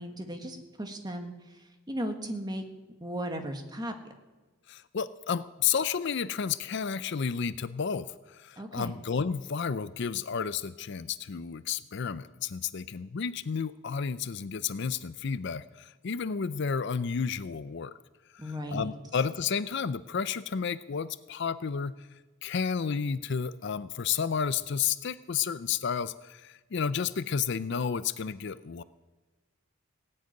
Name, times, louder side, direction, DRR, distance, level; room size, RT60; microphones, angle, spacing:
voice 1, 0.0-2.6 3.0-3.9 8.6-8.9 18.4-18.9, equal, 20° right, 5 dB, 1.5 m, -36 dB
voice 2, 4.7-17.9 18.3-22.1 22.4-28.8, left 6 dB, 55° left, 15 dB, 0.5 m, -31 dB
17.5 x 7.9 x 9.4 m, 1.2 s
head